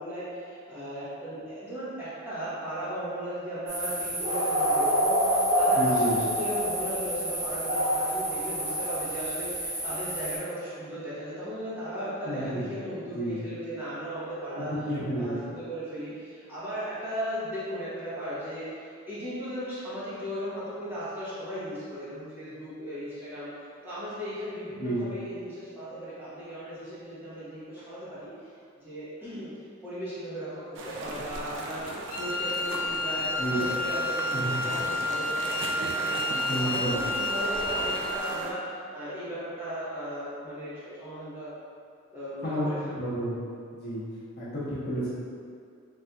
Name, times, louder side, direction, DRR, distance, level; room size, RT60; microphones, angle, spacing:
voice 1, 0.0-14.8 15.1-41.5 42.1-43.1, equal, 10° right, -13 dB, 0.9 m, -37 dB
sound 1, 3.7-10.4, equal, 35° right, 0.9 m, -27 dB
voice 2, 5.7-6.2 12.2-12.6 13.1-13.4 14.5-15.4 24.8-25.1 33.4-33.6 34.3-34.6 36.3-36.9 42.4-43.3 43.7-44.0 44.4-45.1, right 1 dB, 50° left, -10 dB, 0.9 m, -31 dB
sound 2, 30.7-38.5, right 2 dB, 60° right, 0.3 m, -37 dB
Wind instrument woodwind instrument, 32.1-38.4, left 2 dB, 70° left, 0.4 m, -30 dB
4.0 x 2.6 x 2.3 m, 2.3 s
head